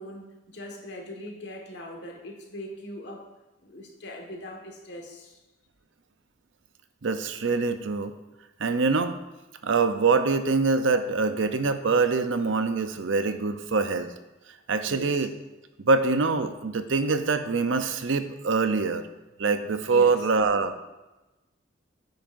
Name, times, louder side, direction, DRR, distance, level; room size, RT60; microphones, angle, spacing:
voice 1, 0.0-3.3 3.6-5.4 14.9-15.3 19.9-20.2, left 1 dB, 60° left, 1 dB, 1.5 m, -41 dB
voice 2, 7.0-8.1 8.6-9.1 9.6-14.1 14.7-15.3 15.8-19.1 19.4-20.9, right 4 dB, 80° right, 9 dB, 0.6 m, -24 dB
9.5 x 9.1 x 2.6 m, 1.1 s
head